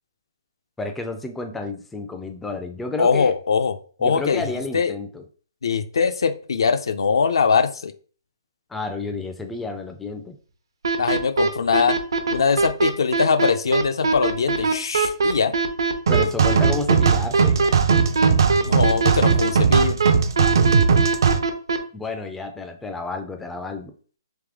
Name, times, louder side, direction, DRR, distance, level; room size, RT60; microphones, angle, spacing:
voice 1, 0.8-3.3 4.0-5.2 8.7-10.4 16.1-17.8 21.9-24.0, left 3 dB, 5° left, 5 dB, 0.3 m, -31 dB
voice 2, 3.0-4.4 4.7-4.9 5.6-7.9 11.0-12.0 12.3-15.5 18.6-20.0, left 5 dB, 75° left, 11 dB, 0.5 m, -21 dB
sound 1, 10.8-21.8, right 4 dB, 85° right, 0.8 m, -21 dB
sound 2, 16.1-21.4, right 6 dB, 60° right, 0.4 m, -19 dB
3.5 x 3.1 x 3.5 m, 0.42 s
hypercardioid pair, 165°, 2 cm